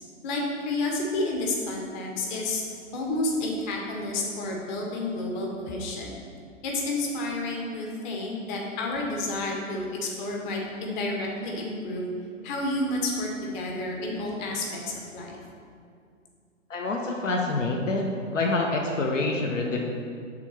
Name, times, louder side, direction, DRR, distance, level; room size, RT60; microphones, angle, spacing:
voice 1, 0.2-2.6 2.9-6.1 6.6-12.1 12.4-13.3 13.5-15.4, left 2 dB, 35° left, -1 dB, 1.2 m, -30 dB
voice 2, 16.7-19.8, left 2 dB, 75° left, 0 dB, 0.8 m, -27 dB
5.8 x 3.9 x 5.7 m, 2.3 s
figure-of-eight pair, 115°, 38 cm